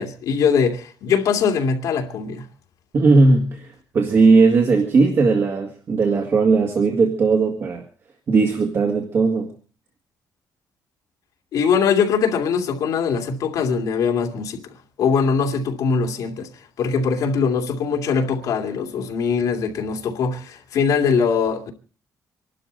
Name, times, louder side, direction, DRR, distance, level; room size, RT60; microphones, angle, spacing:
voice 1, 0.0-2.4 11.5-14.7 15.0-16.5 16.8-21.7, left 6 dB, 65° left, 2.5 m, -21 dB
voice 2, 2.9-7.8 8.3-9.5, right 4 dB, 40° right, 1.9 m, -17 dB
25.5 x 12.0 x 4.0 m
cardioid pair, 155°, 7 cm